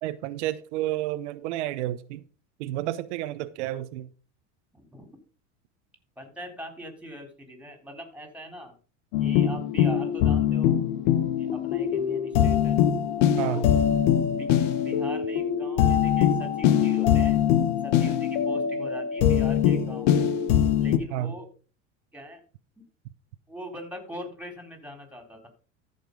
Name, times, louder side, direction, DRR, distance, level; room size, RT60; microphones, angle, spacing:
voice 1, 0.0-2.2 2.6-4.1 13.4-13.7 21.1-21.3, right 14 dB, 75° right, 0.9 m, -30 dB
voice 2, 4.7-5.1 6.2-8.7 9.2-10.8 11.4-12.8 13.4-13.7 14.4-14.5 14.8-17.4 17.8-20.3 20.8-21.5 22.1-22.4 23.5-25.5, equal, 5° right, 3.8 m, -41 dB
sound 1, 9.1-21.0, left 9 dB, 75° left, 1.4 m, -23 dB
13.5 x 5.6 x 5.3 m
supercardioid pair, 115°, 35 cm